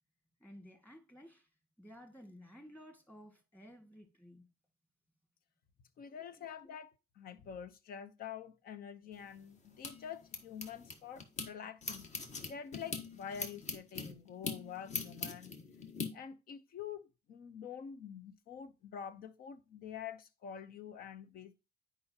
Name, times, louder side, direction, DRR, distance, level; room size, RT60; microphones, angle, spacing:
voice 1, 0.4-1.5 1.8-4.5 6.2-6.5, equal, 10° left, 2.0 m, -55 dB
voice 2, 6.0-12.1 12.4-15.6 16.1-21.6, left 8 dB, 60° left, 0.8 m, -47 dB
sound 1, 9.1-11.5 11.8-16.1, left 4 dB, 45° left, 1.5 m, -42 dB
9.3 x 5.0 x 2.9 m
cardioid pair, 110°, 17 cm